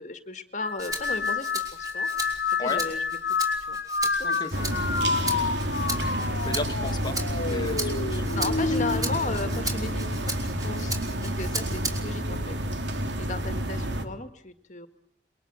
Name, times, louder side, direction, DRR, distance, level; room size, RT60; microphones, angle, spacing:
voice 1, 0.0-3.0 3.6-4.7 8.0-12.6 12.8-14.9, left 3 dB, 40° left, 8 dB, 1.9 m, -36 dB
sound 1, 0.6-10.2 10.7-11.2 12.2-12.6, left 5 dB, 60° left, 1.0 m, -30 dB
Rattle (instrument), 0.8-12.2 12.7-13.9, right 2 dB, 20° right, 5.3 m, -37 dB
sound 2, 4.5-14.0, right 1 dB, 80° right, 3.0 m, -30 dB
voice 2, 6.4-7.2 7.5-8.4 8.8-9.1, left 2 dB, 25° left, 6 dB, 2.2 m, -35 dB
28.0 x 23.0 x 7.9 m, 0.66 s
head